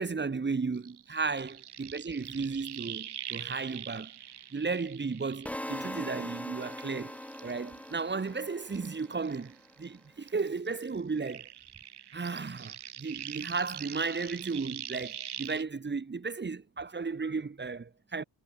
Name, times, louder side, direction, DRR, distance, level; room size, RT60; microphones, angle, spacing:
voice 1, 0.0-4.1 4.5-7.2 7.4-11.5 12.1-18.2, right 4 dB, 25° right, 3.0 m, -34 dB
sound 1, 0.7-6.3 6.6-10.0 10.2-15.6, right 10 dB, 70° right, 4.0 m, -44 dB
sound 2, 5.5-9.5, left 1 dB, 5° left, 4.9 m, -41 dB
wide cardioid pair, 150°, 41 cm